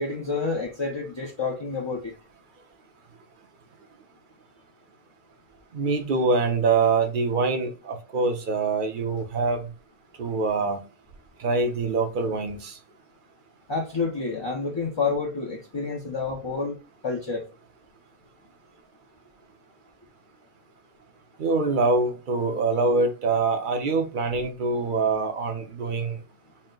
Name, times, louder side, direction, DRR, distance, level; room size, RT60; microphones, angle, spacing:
voice 1, 0.0-2.1 13.7-17.5, left 4 dB, 30° left, 0.6 m, -29 dB
voice 2, 5.7-9.7 10.2-10.8 11.4-12.8 21.4-26.2, right 3 dB, 55° right, 0.8 m, -24 dB
4.3 x 2.1 x 3.7 m
omnidirectional pair, 1.1 m